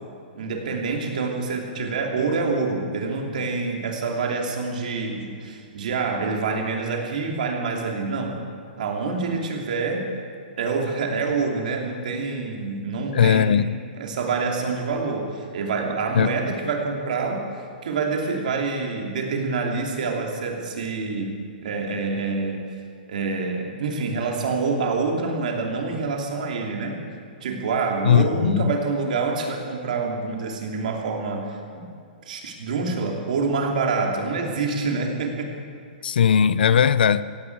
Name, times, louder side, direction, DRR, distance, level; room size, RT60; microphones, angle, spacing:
voice 1, 0.3-8.4 8.8-10.1 10.6-13.6 14.0-17.5 17.8-22.7 23.1-27.0 27.4-31.9 32.3-35.5, right 4 dB, 50° right, 1 dB, 2.8 m, -26 dB
voice 2, 13.1-13.7 16.1-16.3 28.0-28.6 36.0-37.2, left 8 dB, 70° left, 16 dB, 0.5 m, -18 dB
17.0 x 16.0 x 4.7 m, 2.3 s
hypercardioid pair, 180°, 5 cm